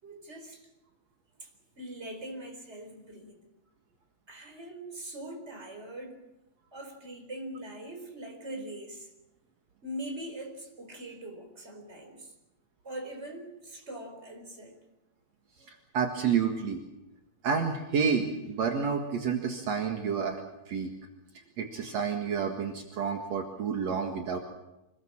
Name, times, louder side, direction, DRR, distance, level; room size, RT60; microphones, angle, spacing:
voice 1, 0.0-0.7 1.4-1.5 1.8-3.4 4.3-6.2 6.7-9.1 9.8-12.3 12.8-14.8, right 1 dB, 20° right, 4 dB, 4.4 m, -42 dB
voice 2, 15.6-16.8 17.4-20.4 20.7-20.9 21.6-24.4, right 6 dB, 65° right, 3 dB, 2.9 m, -29 dB
25.5 x 20.5 x 7.5 m, 0.97 s
omnidirectional pair, 3.4 m